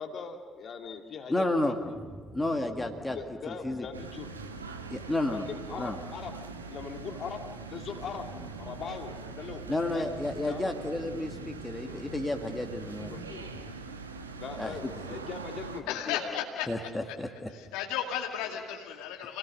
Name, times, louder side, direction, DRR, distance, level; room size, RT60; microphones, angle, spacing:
voice 1, 0.0-2.0 3.0-4.3 5.3-6.4 6.7-8.3 8.6-9.7 9.9-10.7 11.8-12.0 13.1-13.5 14.4-16.4 18.5-18.6, left 5 dB, 45° left, 5 dB, 2.2 m, -41 dB
voice 2, 1.3-1.8 2.3-3.2 3.5-3.9 4.9-5.4 5.8-6.0 9.7-13.1 14.6-14.8 16.7-17.5, left 2 dB, 15° left, 4 dB, 2.0 m, -31 dB
sound 1, 1.8-13.7, right 1 dB, 10° right, 2.9 m, -49 dB
sound 2, 3.9-15.8, right 4 dB, 85° right, 1.1 m, -43 dB
voice 3, 15.9-16.9 17.5-19.4, left 9 dB, 65° left, 2 dB, 2.2 m, -34 dB
28.0 x 18.5 x 6.6 m, 1.5 s
figure-of-eight pair, 50°, 0 cm